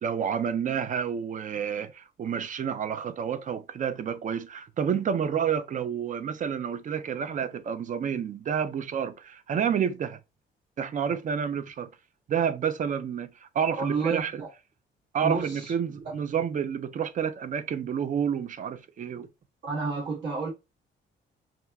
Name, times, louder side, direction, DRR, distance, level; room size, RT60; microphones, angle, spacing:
voice 1, 0.0-10.2 10.8-11.9 12.3-14.4 15.1-19.3, right 8 dB, 40° right, 0.4 m, -29 dB
voice 2, 13.8-14.5 15.2-15.7 19.6-20.5, right 4 dB, 65° right, 1.5 m, -30 dB
2.8 x 2.4 x 2.3 m
cardioid pair, 90°, 20 cm